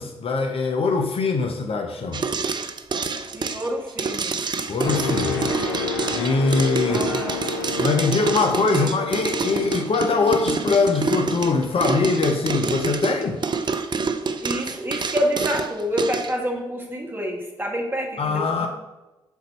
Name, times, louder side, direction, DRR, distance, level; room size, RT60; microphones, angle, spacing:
voice 1, 0.0-2.2 4.7-5.4 6.1-7.0 7.8-13.4 18.2-18.7, left 4 dB, 45° left, 4 dB, 0.7 m, -22 dB
sound 1, 2.1-16.3, right 5 dB, 35° right, 0.5 m, -27 dB
voice 2, 3.3-4.4 5.2-6.0 6.9-7.4 8.7-8.9 14.4-18.7, equal, 15° right, 0 dB, 1.6 m, -28 dB
sound 2, 4.8-12.6 13.1-13.3, left 6 dB, 85° left, 0.6 m, -31 dB
4.6 x 3.9 x 5.4 m, 1.1 s
hypercardioid pair, 40°, 13 cm